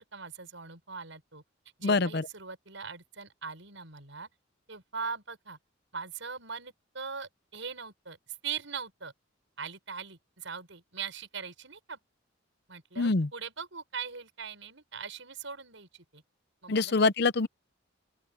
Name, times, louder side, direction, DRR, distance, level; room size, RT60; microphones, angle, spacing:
voice 1, 0.0-1.4 1.8-4.3 4.7-5.6 5.9-8.2 8.4-9.1 9.6-12.0 12.7-16.2 16.6-16.9, right 6 dB, 70° right, 6.1 m, -41 dB
voice 2, 1.8-2.3 13.0-13.3 16.7-17.5, left 3 dB, 55° left, 0.7 m, -25 dB
open air
head